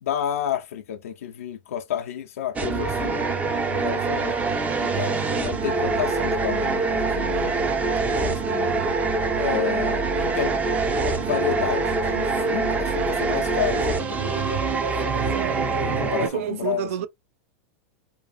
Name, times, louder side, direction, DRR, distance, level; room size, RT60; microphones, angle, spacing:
voice 1, 0.0-4.4 4.8-7.7 8.1-8.8 9.4-10.6 11.0-14.5 15.8-17.1, left 10 dB, 90° left, 0.4 m, -31 dB
sound 1, 2.6-16.3, right 4 dB, 20° right, 0.5 m, -24 dB
voice 2, 15.1-15.9 16.2-17.1, right 10 dB, 70° right, 0.5 m, -31 dB
2.7 x 2.5 x 2.2 m
hypercardioid pair, 120°, 7 cm